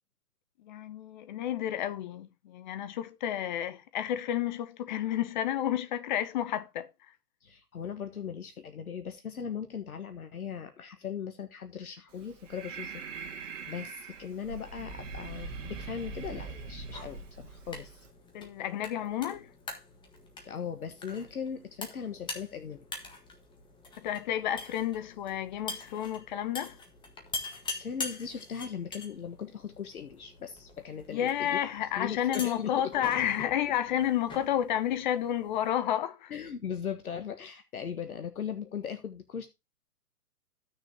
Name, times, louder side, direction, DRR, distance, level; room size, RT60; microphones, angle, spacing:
voice 1, 0.6-6.9 18.3-19.5 24.0-26.8 31.1-36.3, left 11 dB, 30° left, 0.9 m, -31 dB
voice 2, 7.4-13.3 13.7-18.0 20.5-22.9 27.7-31.6 32.0-32.7 36.3-39.5, left 7 dB, 65° left, 1.6 m, -39 dB
Breathing, 12.1-18.1, right 4 dB, 50° right, 2.0 m, -42 dB
sound 1, 16.8-35.7, left 3 dB, 10° left, 1.6 m, -44 dB
15.5 x 6.5 x 2.8 m
figure-of-eight pair, 130°, 47 cm